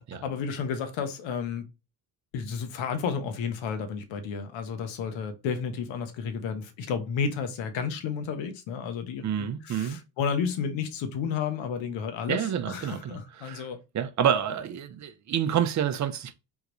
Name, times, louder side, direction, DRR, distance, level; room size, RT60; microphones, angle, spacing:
voice 1, 0.0-1.6 2.3-13.8, left 6 dB, 65° left, 0.9 m, -32 dB
voice 2, 9.2-10.0 12.3-13.1 13.4-13.7 13.9-16.3, right 9 dB, 35° right, 0.6 m, -28 dB
3.6 x 2.4 x 3.0 m
hypercardioid pair, 65°, 50 cm